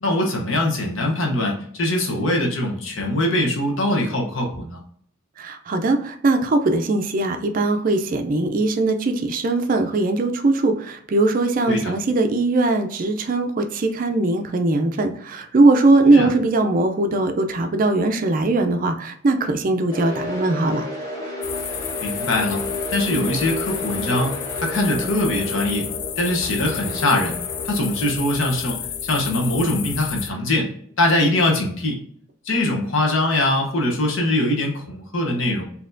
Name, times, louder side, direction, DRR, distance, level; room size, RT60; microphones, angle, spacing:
voice 1, 0.0-4.8 11.7-11.9 16.1-16.3 22.0-22.6 22.9-25.9 26.2-27.4 27.6-30.7 31.0-32.0 32.5-35.6, left 1 dB, 65° left, 1 dB, 0.9 m, -22 dB
voice 2, 5.4-20.8, right 2 dB, 40° right, 6 dB, 0.4 m, -20 dB
sound 1, 19.9-30.0, left 1 dB, 20° left, 1.2 m, -32 dB
sound 2, 21.4-30.3, left 9 dB, 50° left, 0.3 m, -31 dB
4.1 x 2.8 x 2.6 m, 0.62 s
head